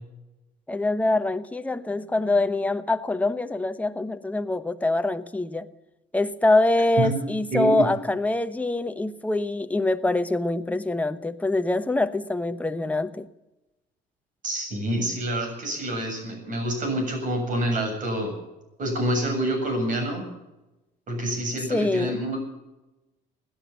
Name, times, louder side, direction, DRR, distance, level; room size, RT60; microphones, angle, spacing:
voice 1, 0.7-5.7 6.1-13.3 21.7-22.2, left 2 dB, 10° left, 1.0 m, -24 dB
voice 2, 7.0-7.9 14.4-18.4 18.8-20.3 21.1-22.4, right 1 dB, 50° right, 7.5 m, -27 dB
17.0 x 10.5 x 8.1 m
cardioid pair, 110°, 17 cm